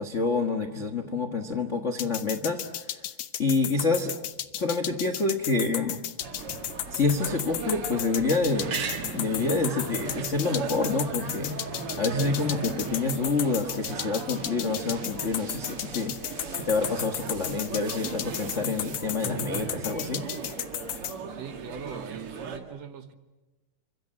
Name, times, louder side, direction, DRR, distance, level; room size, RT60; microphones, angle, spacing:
voice 1, 0.0-3.0 3.4-4.2 4.5-6.0 6.9-11.6 12.0-20.2, left 3 dB, 85° left, 8 dB, 0.6 m, -28 dB
sound 1, 2.0-21.1, left 12 dB, 65° left, 1.8 m, -34 dB
sound 2, 4.4-19.0, right 3 dB, 90° right, 7.4 m, -52 dB
sound 3, 6.2-22.6, right 5 dB, 45° right, 2.6 m, -37 dB
voice 2, 21.3-23.1, right 7 dB, 60° right, 10 dB, 2.0 m, -41 dB
29.5 x 25.5 x 7.6 m, 1.1 s
omnidirectional pair, 3.7 m